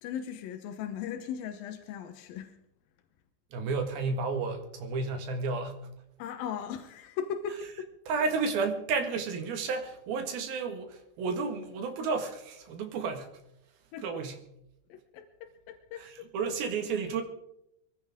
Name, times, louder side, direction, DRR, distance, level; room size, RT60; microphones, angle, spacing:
voice 1, 0.0-2.5 6.2-7.9 13.9-14.1 14.9-16.1, left 8 dB, 70° left, 7 dB, 2.3 m, -38 dB
voice 2, 3.5-5.8 8.1-13.3 14.0-14.4 16.0-17.2, right 4 dB, 60° right, 5 dB, 3.4 m, -32 dB
23.0 x 16.0 x 3.7 m, 0.79 s
omnidirectional pair, 5.1 m